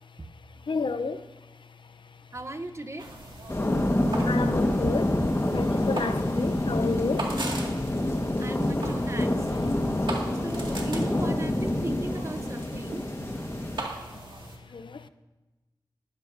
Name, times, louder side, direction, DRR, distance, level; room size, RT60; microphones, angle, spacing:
voice 1, 0.7-1.2 4.3-5.1 5.5-7.3 11.9-12.0 14.7-15.0, left 4 dB, 85° left, 0.6 m, -31 dB
voice 2, 2.3-3.1 4.8-4.9 8.4-9.4 10.4-13.0, right 2 dB, 35° right, 0.8 m, -37 dB
sound 1, 3.0-14.6, right 2 dB, 90° right, 2.1 m, -39 dB
sound 2, 3.5-13.8, left 1 dB, 35° left, 1.4 m, -27 dB
19.5 x 14.5 x 2.6 m
wide cardioid pair, 75°, 8 cm